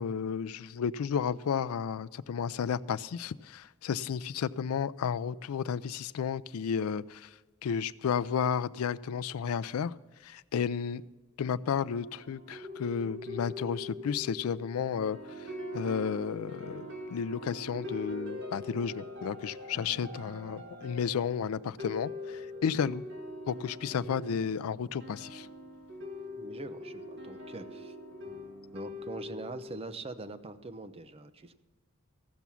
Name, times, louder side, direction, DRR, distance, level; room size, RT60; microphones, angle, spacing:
voice 1, 0.0-7.3 7.6-9.9 10.2-11.0 11.4-15.2 15.7-23.0 23.5-25.5, left 7 dB, 80° left, 16 dB, 0.4 m, -32 dB
sound 1, 11.7-29.8, left 1 dB, 60° right, 1.6 m, -43 dB
voice 2, 26.4-28.0 28.7-31.5, right 2 dB, 30° right, 9 dB, 0.6 m, -43 dB
15.0 x 6.0 x 7.0 m, 1.4 s
head